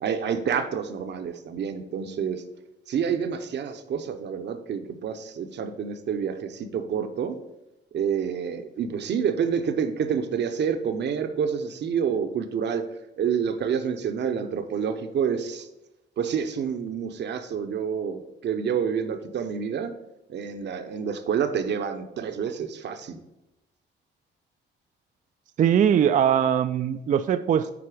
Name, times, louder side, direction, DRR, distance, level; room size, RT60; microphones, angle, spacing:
voice 1, 0.0-2.4 2.9-7.4 7.9-12.8 13.2-15.7 16.2-19.9 20.3-23.2, right 7 dB, 60° right, 8 dB, 0.8 m, -28 dB
voice 2, 25.6-27.7, right 9 dB, 40° right, 12 dB, 0.4 m, -21 dB
8.7 x 4.2 x 4.9 m, 0.92 s
cardioid pair, 90°, 20 cm